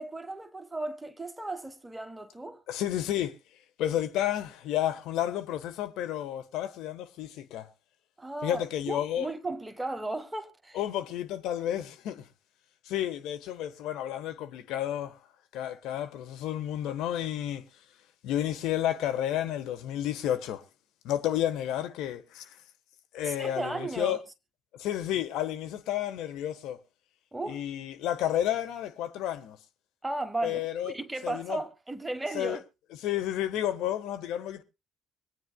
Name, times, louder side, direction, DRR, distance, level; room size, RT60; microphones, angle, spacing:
voice 1, 0.0-2.6 8.2-10.8 23.2-24.2 27.3-27.7 30.0-32.6, right 2 dB, 15° right, 1.4 m, -35 dB
voice 2, 2.7-3.3 3.8-7.7 8.4-9.3 10.7-12.2 12.8-15.2 15.5-17.6 18.2-20.6 21.0-22.5 23.1-24.2 24.8-26.8 27.5-29.6 30.4-30.9 31.2-31.6 32.3-32.6 33.0-34.6, left 11 dB, 75° left, 1.3 m, -31 dB
25.0 x 9.3 x 2.3 m
hypercardioid pair, 55°, 0 cm